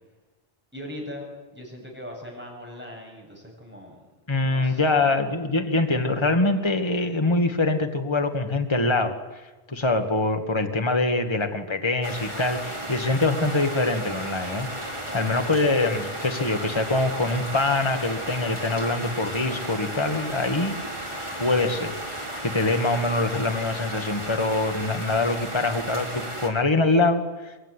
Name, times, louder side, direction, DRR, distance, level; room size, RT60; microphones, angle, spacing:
voice 1, 0.7-1.3 1.5-4.0 4.4-5.4 15.0-15.4, left 1 dB, 10° right, -1 dB, 7.8 m, -40 dB
voice 2, 4.3-9.2 9.7-14.7 15.1-20.8 21.4-21.9 22.4-27.6, left 2 dB, 25° left, 6 dB, 1.9 m, -24 dB
sound 1, 12.0-26.5, right 1 dB, 25° right, 4.3 m, -34 dB
24.5 x 23.5 x 9.9 m, 1.2 s
omnidirectional pair, 1.1 m